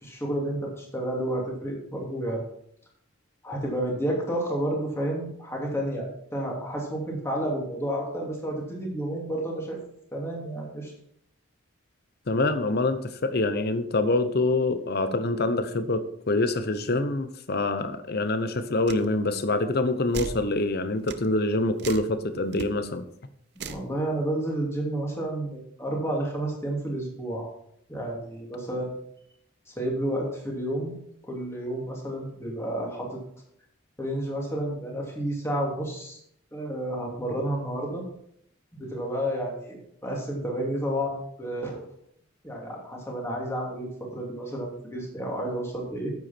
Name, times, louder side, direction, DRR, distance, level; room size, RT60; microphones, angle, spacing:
voice 1, 0.0-2.4 3.4-9.8 10.1-10.9 23.5-27.5 27.9-28.9 29.7-30.9 31.2-33.2 34.0-36.2 36.5-38.0 38.7-41.8 42.4-46.1, right 1 dB, 15° left, -2 dB, 2.7 m, -31 dB
voice 2, 12.3-23.0, left 2 dB, 55° left, 11 dB, 0.8 m, -25 dB
sound 1, 18.9-19.0 20.1-20.4 21.1-21.2 21.8-22.1 22.5-22.7 23.6-23.9, right 5 dB, 55° right, 0.6 m, -36 dB
9.5 x 7.9 x 4.4 m, 0.71 s
head